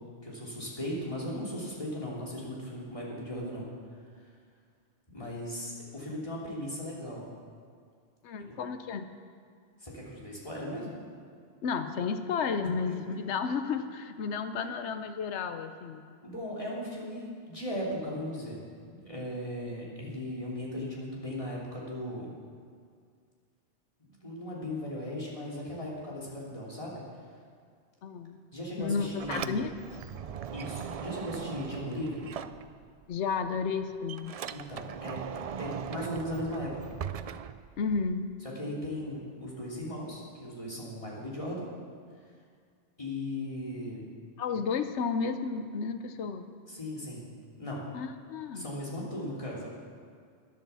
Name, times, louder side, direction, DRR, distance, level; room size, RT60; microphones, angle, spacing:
voice 1, 0.2-3.7 5.1-7.2 8.4-8.6 9.8-10.9 12.6-13.2 16.2-18.6 18.9-22.3 24.2-27.0 28.5-29.7 30.5-32.3 34.5-35.2 35.6-36.9 38.4-41.7 43.0-44.0 46.7-47.2 47.6-47.8 48.5-49.7, left 1 dB, 30° left, -5 dB, 3.0 m, -37 dB
voice 2, 8.2-9.1 11.6-16.0 28.0-28.4 28.8-29.7 33.1-34.4 37.8-38.3 44.4-46.5 47.9-48.7, left 5 dB, 80° left, 9 dB, 1.1 m, -32 dB
Sliding door, 28.8-33.2 33.5-38.2, right 8 dB, 75° right, 0.3 m, -40 dB
12.5 x 10.5 x 7.0 m, 2.1 s
omnidirectional pair, 1.2 m